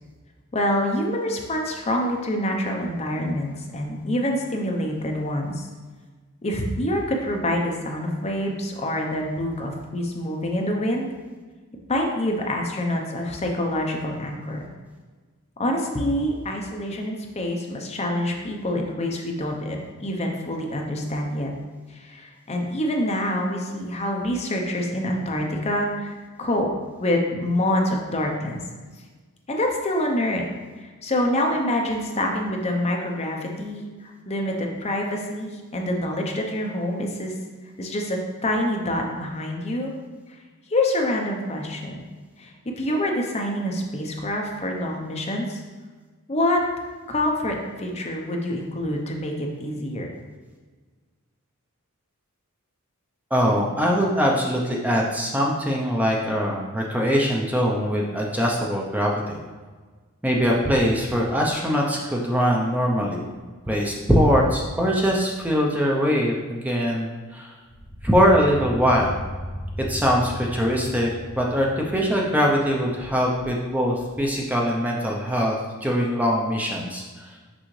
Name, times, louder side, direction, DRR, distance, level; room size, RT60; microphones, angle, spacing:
voice 1, 0.5-5.7 6.4-11.1 11.9-14.6 15.6-21.5 21.9-26.7 27.0-28.6 29.5-30.4 30.8-37.3 37.8-39.9 40.7-42.0 42.4-42.5 42.8-45.6 46.3-46.6 47.1-49.3 49.6-50.1, left 1 dB, 30° left, 1 dB, 0.7 m, -26 dB
voice 2, 53.3-59.4 60.2-63.2 63.7-67.5 68.0-69.1 69.9-71.1 71.4-77.0, equal, 5° right, -1 dB, 0.6 m, -22 dB
sound 1, 67.6-72.9, equal, 35° right, 1.1 m, -36 dB
6.2 x 5.5 x 3.2 m, 1.4 s
head